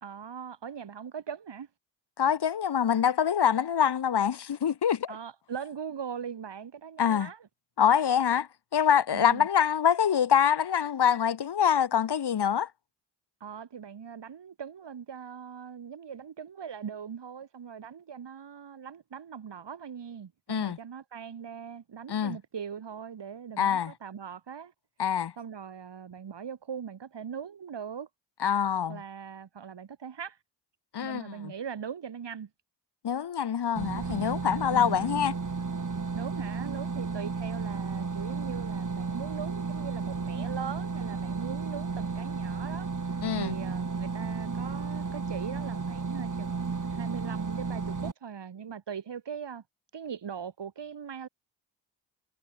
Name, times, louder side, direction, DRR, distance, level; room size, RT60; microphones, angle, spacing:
voice 1, 0.0-1.7 5.1-7.5 9.1-9.5 13.4-24.7 25.4-28.1 28.9-30.4 31.0-32.5 34.7-35.1 36.1-49.6 49.9-51.3, right 7 dB, 65° right, 2.9 m, -40 dB
voice 2, 2.2-5.2 7.0-7.3 7.8-12.7 20.5-20.8 22.1-22.4 23.6-23.9 25.0-25.3 28.4-29.0 30.9-31.5 33.0-35.3 43.2-43.5, left 8 dB, 60° left, 1.4 m, -25 dB
sound 1, 33.8-48.1, right 4 dB, 40° right, 4.0 m, -33 dB
cardioid pair, 55°, 46 cm